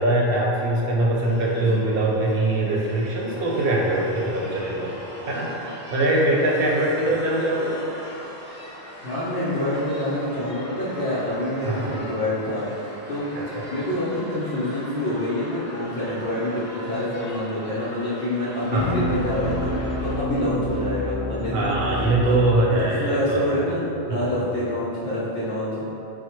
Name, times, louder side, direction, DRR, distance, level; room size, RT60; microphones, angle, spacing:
voice 1, 0.0-5.0 5.3-7.8 11.7-11.9 13.4-13.6 18.7-19.0 21.5-23.6 24.1-24.2, right 2 dB, 60° right, -3 dB, 0.8 m, -22 dB
sound 1, 1.2-20.2, equal, 10° right, 0.8 m, -40 dB
voice 2, 1.5-1.9 2.4-2.7 4.4-4.5 9.0-13.3 13.7-19.7 20.0-21.8 22.2-22.4 22.8-23.8 24.1-25.8, left 1 dB, 65° left, -10 dB, 0.9 m, -27 dB
sound 2, 18.8-22.7, equal, 25° left, 0.8 m, -28 dB
4.4 x 2.1 x 4.3 m, 2.8 s
omnidirectional pair, 1.2 m